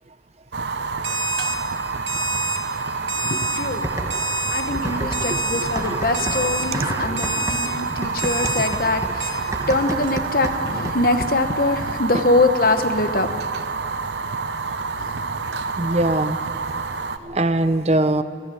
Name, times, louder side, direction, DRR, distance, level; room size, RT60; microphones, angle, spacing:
Fire, 0.5-17.2, right 4 dB, 70° right, 0.8 m, -28 dB
Alarm, 1.0-1.6 2.1-2.6 3.1-3.6 4.1-4.6 5.1-5.6 6.1-6.6 7.2-7.7 8.2-8.7 9.2-9.3, right 2 dB, 90° right, 2.6 m, -27 dB
voice 1, 3.1-3.9 4.5-13.3 15.0-15.2, left 2 dB, 50° left, 8 dB, 1.1 m, -23 dB
sound 1, 3.8-4.4 4.7-11.2, right 1 dB, 15° right, 1.2 m, -31 dB
voice 2, 5.3-6.0 6.7-6.9 9.5-9.7 15.8-16.4 17.2-18.2, right 1 dB, 35° right, 11 dB, 0.6 m, -22 dB
20.5 x 14.5 x 9.1 m, 2.6 s
head